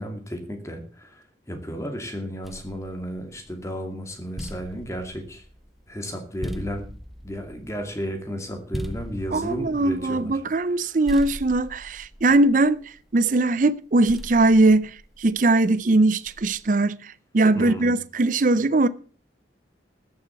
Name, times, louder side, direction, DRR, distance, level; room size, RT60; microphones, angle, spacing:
voice 1, 0.0-5.4 5.9-6.9 7.2-10.4 10.8-10.9 17.5-18.0, equal, 15° left, 2.4 m, -33 dB
sound 1, 2.4-3.7 4.1-10.8 11.1-13.3 14.1-15.5 16.3-16.7, equal, ahead, 0.7 m, -39 dB
voice 2, 9.3-18.9, right 2 dB, 45° right, 0.5 m, -20 dB
14.0 x 7.8 x 7.0 m
head